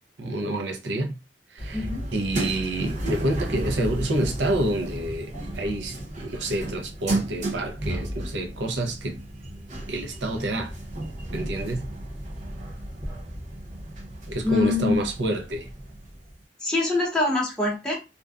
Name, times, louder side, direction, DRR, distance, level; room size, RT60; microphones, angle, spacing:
voice 1, 0.2-1.1 1.5-1.9 2.1-9.2 9.9-10.7 11.3-11.9 14.3-15.7, right 1 dB, 80° right, 0.6 m, -28 dB
sound 1, 1.6-16.4, right 1 dB, 45° right, 0.8 m, -33 dB
voice 2, 1.7-2.1 14.4-15.1 16.6-17.9, left 3 dB, 5° left, 0.8 m, -24 dB
2.5 x 2.2 x 2.3 m
head